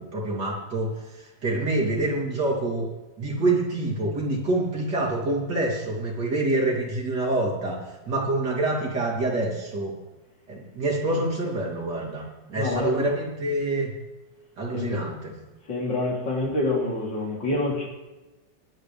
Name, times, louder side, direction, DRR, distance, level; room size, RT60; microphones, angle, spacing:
voice 1, 0.0-2.9 3.2-7.8 8.1-9.9 10.5-13.9 14.6-15.3, right 2 dB, 60° right, -3 dB, 3.6 m, -26 dB
voice 2, 12.5-13.0 14.7-15.0 15.7-17.9, left 2 dB, 75° left, -3 dB, 4.0 m, -26 dB
22.0 x 9.0 x 3.4 m, 1.1 s
omnidirectional pair, 2.0 m